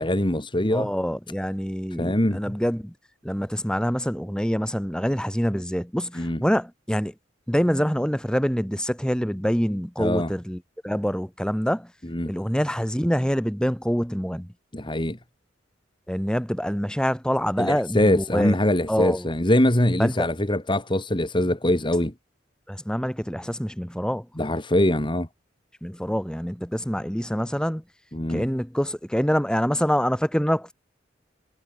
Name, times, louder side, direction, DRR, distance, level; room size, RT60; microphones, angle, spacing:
voice 1, 0.0-0.9 2.0-2.6 6.1-6.4 10.0-10.3 12.0-12.3 14.7-15.2 17.6-22.1 24.4-25.3 28.1-28.5, left 1 dB, 25° left, 2.4 m, -23 dB
voice 2, 0.7-2.9 3.2-7.1 7.5-10.6 10.8-11.9 12.3-14.5 16.1-18.6 18.9-19.2 20.0-20.3 22.7-24.3 25.8-27.8 28.3-30.7, equal, 5° left, 3.4 m, -25 dB
head